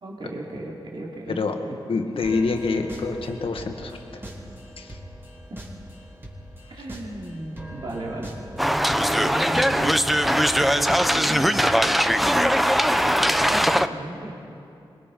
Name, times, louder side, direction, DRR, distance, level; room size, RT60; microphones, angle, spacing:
voice 1, 0.0-1.8 2.3-2.4 6.7-8.4 9.1-12.1 13.0-14.4, right 2 dB, 60° right, -2 dB, 2.8 m, -35 dB
voice 2, 1.9-4.2 4.8-5.0, left 4 dB, 75° left, 4 dB, 1.8 m, -26 dB
sound 1, 2.2-12.9, equal, 25° right, 3.3 m, -41 dB
sound 2, 8.6-13.9, equal, ahead, 0.6 m, -20 dB
23.5 x 21.0 x 5.4 m, 2.7 s
cardioid pair, 80°, 9 cm